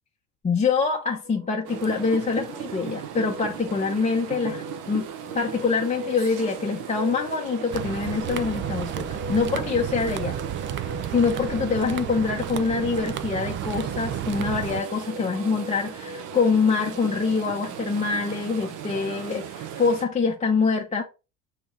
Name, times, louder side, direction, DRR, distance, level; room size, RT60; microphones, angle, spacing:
voice 1, 0.4-5.1 5.3-10.4 10.7-21.0, left 4 dB, 15° left, 0.7 m, -25 dB
sound 1, 1.2-17.7, left 2 dB, 70° right, 1.7 m, -41 dB
sound 2, 1.6-20.0, right 9 dB, 55° right, 1.0 m, -38 dB
sound 3, 7.7-14.8, right 11 dB, 30° right, 0.4 m, -32 dB
6.1 x 2.9 x 2.8 m
figure-of-eight pair, 65°, 45 cm